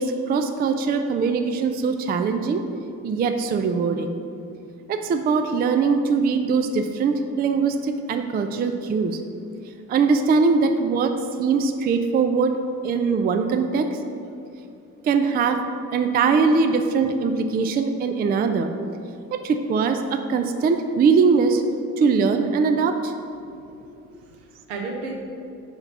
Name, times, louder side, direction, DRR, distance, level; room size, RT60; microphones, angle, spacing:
voice 1, 0.0-2.6 3.0-4.1 4.9-9.2 9.9-11.1 11.4-12.6 12.8-14.0 15.0-15.6 15.9-18.7 19.3-21.6 22.0-23.1, right 5 dB, 20° right, 6 dB, 0.4 m, -21 dB
voice 2, 23.5-25.1, right 3 dB, 70° right, 1 dB, 1.1 m, -36 dB
5.2 x 4.9 x 5.7 m, 2.7 s
figure-of-eight pair, 45°, 46 cm